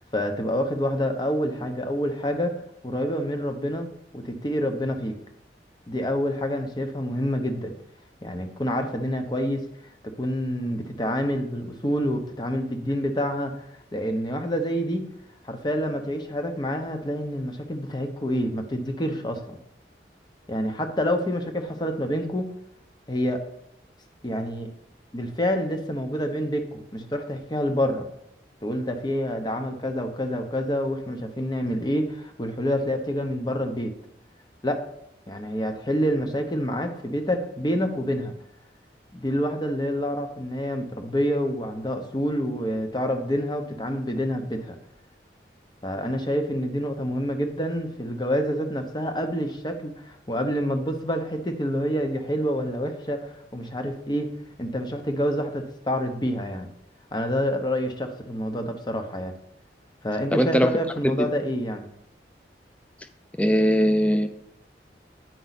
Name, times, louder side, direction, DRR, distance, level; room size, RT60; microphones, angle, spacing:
voice 1, 0.0-2.6 2.8-3.9 4.1-5.2 5.9-7.7 8.2-9.6 10.0-13.6 13.9-15.1 15.4-19.6 20.5-22.5 23.1-23.4 24.2-24.7 25.1-28.1 28.6-33.9 34.6-34.8 35.3-38.3 39.1-44.8 45.8-54.3 54.6-56.7 57.1-59.3 60.0-61.8, equal, 25° left, 6 dB, 0.8 m, -27 dB
voice 2, 60.3-60.7 61.2-61.3 63.4-64.3, equal, 5° left, 9 dB, 0.4 m, -20 dB
9.3 x 5.4 x 4.1 m, 0.77 s
head